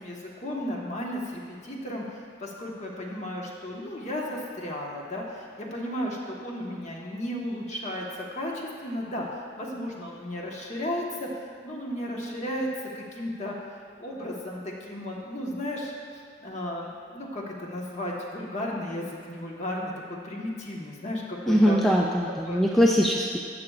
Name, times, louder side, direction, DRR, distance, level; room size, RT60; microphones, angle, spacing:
voice 1, 0.0-9.3 9.6-11.3 11.6-12.7 12.9-13.5 14.0-15.9 16.4-22.6, left 1 dB, 40° left, -2 dB, 1.3 m, -34 dB
voice 2, 21.5-23.4, equal, ahead, -2 dB, 0.4 m, -21 dB
12.5 x 8.6 x 2.4 m, 2.3 s
head